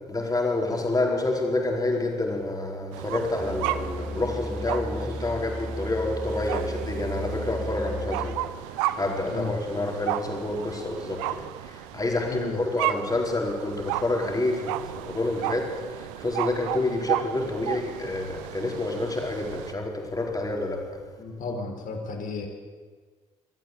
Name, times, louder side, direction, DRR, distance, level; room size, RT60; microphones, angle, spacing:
voice 1, 0.1-21.0, left 2 dB, 20° left, 4.6 m, -28 dB
sound 1, 2.9-19.7, right 14 dB, 70° right, 0.8 m, -34 dB
Musical instrument, 3.4-8.5, equal, 5° right, 1.5 m, -35 dB
voice 2, 9.3-9.9 12.3-12.7 21.2-22.5, left 4 dB, 50° left, 4.1 m, -33 dB
23.0 x 14.0 x 8.1 m
figure-of-eight pair, 50°, 18 cm